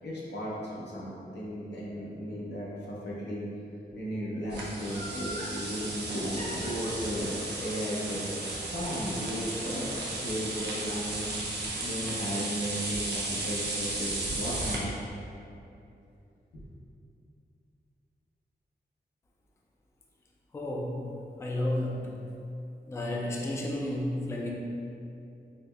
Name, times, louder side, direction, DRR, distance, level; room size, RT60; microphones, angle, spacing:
voice 1, 0.0-3.4 3.9-8.3 8.7-14.9, equal, 80° left, -7 dB, 0.8 m, -35 dB
sound 1, 4.5-14.8, right 2 dB, 85° right, 0.6 m, -35 dB
Laughter, 4.8-5.6 6.4-9.5 9.8-9.9, right 1 dB, 35° left, 0.9 m, -43 dB
voice 2, 20.5-21.1 21.4-22.2 22.9-24.5, left 1 dB, 15° left, -2 dB, 0.3 m, -32 dB
4.9 x 2.1 x 2.3 m, 2.6 s
wide cardioid pair, 90°, 17 cm